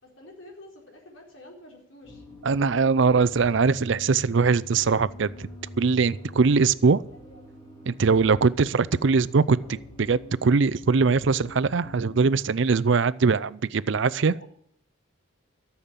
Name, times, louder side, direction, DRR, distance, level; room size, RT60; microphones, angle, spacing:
voice 1, 0.0-2.2 7.1-7.4 13.9-14.4, left 1 dB, 65° left, 1 dB, 4.3 m, -49 dB
sound 1, 2.0-12.5, left 1 dB, 20° left, 3.3 m, -44 dB
voice 2, 2.4-5.5 5.8-7.0 7.9-14.3, right 4 dB, 60° right, 16 dB, 0.5 m, -22 dB
14.0 x 7.2 x 8.9 m, 0.66 s
head